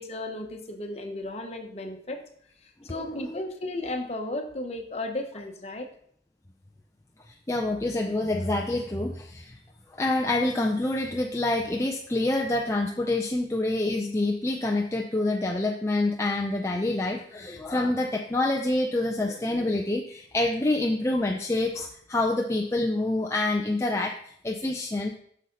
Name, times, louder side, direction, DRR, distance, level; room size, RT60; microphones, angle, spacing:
voice 1, 0.0-2.2 2.6-5.9, left 2 dB, 35° left, 4 dB, 1.1 m, -34 dB
voice 2, 3.0-3.4 7.5-9.6 10.0-25.1, left 2 dB, 15° left, 1 dB, 0.5 m, -27 dB
8.3 x 6.4 x 4.0 m, 0.63 s
head